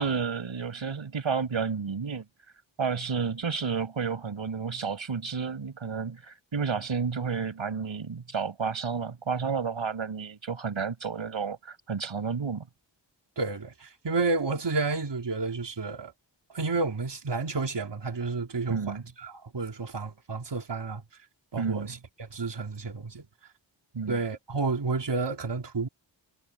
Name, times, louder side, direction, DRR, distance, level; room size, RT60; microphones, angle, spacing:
voice 1, 0.0-2.2 2.8-12.7 18.7-19.1 21.6-22.0 23.9-24.2, right 5 dB, 85° right, 6.8 m, -31 dB
voice 2, 13.4-16.1 16.5-21.0 21.5-23.2 24.1-25.9, right 3 dB, 65° right, 3.5 m, -31 dB
wide cardioid pair, 80°, 46 cm